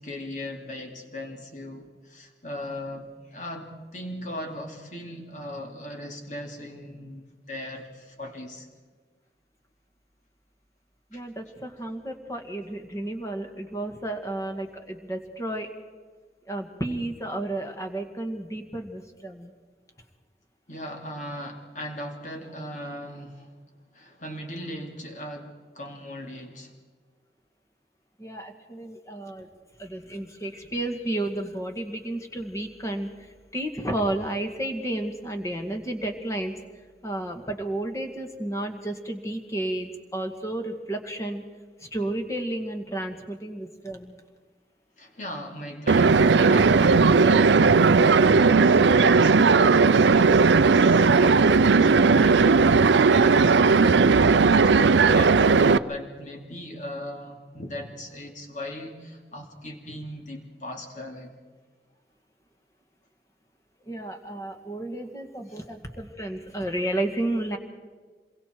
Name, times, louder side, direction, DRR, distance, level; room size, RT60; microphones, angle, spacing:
voice 1, 0.0-8.7 11.1-11.2 20.7-23.6 23.9-26.7 45.0-48.1 48.3-54.0 54.5-61.3 65.5-65.6, left 1 dB, 45° left, 2.8 m, -38 dB
voice 2, 11.1-15.7 16.5-19.5 28.2-29.5 29.8-36.5 37.0-41.4 41.8-44.2 63.9-67.6, right 1 dB, 15° left, 1.9 m, -32 dB
sound 1, 45.9-55.8, right 4 dB, 90° right, 0.5 m, -17 dB
27.0 x 22.5 x 4.6 m
head